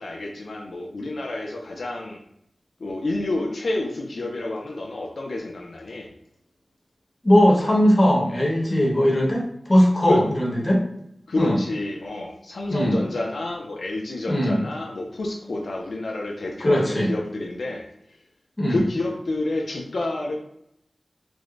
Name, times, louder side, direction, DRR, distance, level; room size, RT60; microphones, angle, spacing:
voice 1, 0.0-2.2 2.8-6.1 10.1-10.2 11.3-17.9 18.7-20.4, left 2 dB, 85° left, 0 dB, 0.4 m, -29 dB
voice 2, 7.2-10.8 11.4-11.6 12.7-13.0 14.3-14.6 16.6-17.1 18.6-18.8, equal, 35° left, -1 dB, 1.0 m, -19 dB
4.7 x 2.1 x 2.5 m, 0.77 s
wide cardioid pair, 55°, 0 cm